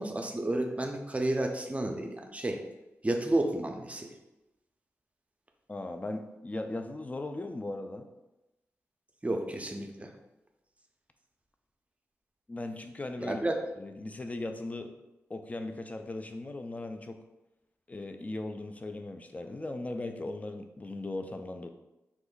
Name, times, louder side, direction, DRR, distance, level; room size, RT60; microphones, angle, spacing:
voice 1, 0.0-2.6 3.0-4.1 9.2-10.1 13.2-13.6, right 1 dB, 25° right, 3 dB, 0.5 m, -31 dB
voice 2, 5.7-8.1 12.5-13.4 13.8-14.9 15.3-17.2 17.9-21.7, left 2 dB, 25° left, 7 dB, 0.4 m, -38 dB
3.4 x 2.1 x 3.8 m, 0.98 s
cardioid pair, 45°, 6 cm